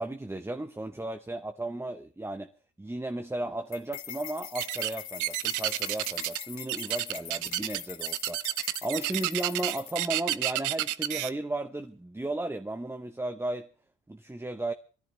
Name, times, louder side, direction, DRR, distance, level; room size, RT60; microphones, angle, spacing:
voice 1, 0.0-2.5 2.8-13.7 14.1-14.7, right 1 dB, 10° right, 0.9 m, -35 dB
sound 1, 3.7-10.2, left 9 dB, 70° left, 2.2 m, -43 dB
sound 2, 4.5-4.9 5.2-6.4 6.7-11.3, right 14 dB, 85° right, 0.7 m, -30 dB
22.0 x 14.0 x 3.2 m
cardioid pair, 90°, 30 cm